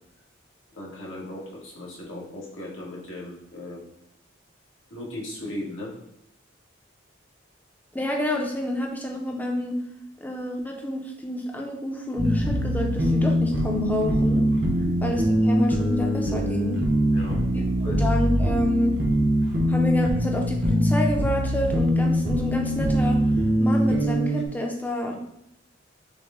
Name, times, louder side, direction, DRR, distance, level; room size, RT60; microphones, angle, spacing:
voice 1, 0.7-3.8 4.9-5.9 14.7-15.0 17.1-18.0, left 1 dB, 85° left, -4 dB, 1.4 m, -37 dB
voice 2, 7.9-9.7 10.2-14.5 15.0-16.8 17.5-18.9 19.7-23.2 23.6-25.1, left 1 dB, 10° left, 1 dB, 0.5 m, -28 dB
sound 1, 12.2-24.4, equal, 60° right, 0.8 m, -23 dB
6.0 x 2.1 x 3.6 m, 0.82 s
head